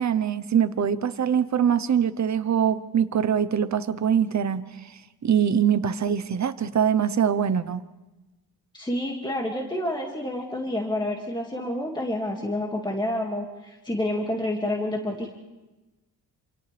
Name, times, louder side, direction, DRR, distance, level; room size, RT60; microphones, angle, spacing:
voice 1, 0.0-4.6 5.2-7.8, right 8 dB, 45° right, 13 dB, 0.9 m, -23 dB
voice 2, 8.7-15.3, left 1 dB, 10° left, 0 dB, 2.2 m, -29 dB
28.0 x 27.5 x 3.4 m, 1.1 s
wide cardioid pair, 110°, 38 cm